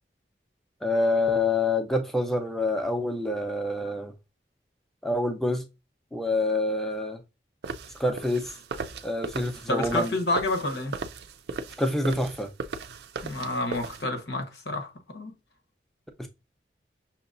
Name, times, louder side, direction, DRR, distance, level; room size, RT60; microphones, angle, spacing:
voice 1, 0.8-4.1 5.0-5.6 6.1-7.2 8.0-8.5 9.0-10.1 11.8-12.5 16.2-16.3, left 2 dB, ahead, 0.6 m, -26 dB
sound 1, 7.6-14.0, right 4 dB, 70° right, 0.4 m, -37 dB
voice 2, 9.7-10.9 13.2-15.3, left 2 dB, 75° left, 1.0 m, -29 dB
6.0 x 2.9 x 2.6 m
head